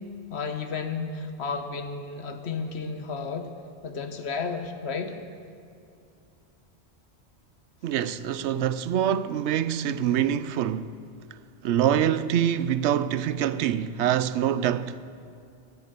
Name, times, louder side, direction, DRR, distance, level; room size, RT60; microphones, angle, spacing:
voice 1, 0.3-3.5 3.8-5.1, left 5 dB, 70° left, 1.3 m, -32 dB
voice 2, 7.8-10.9 11.6-15.0, right 10 dB, 90° right, 0.9 m, -25 dB
21.5 x 7.3 x 6.7 m
omnidirectional pair, 1.1 m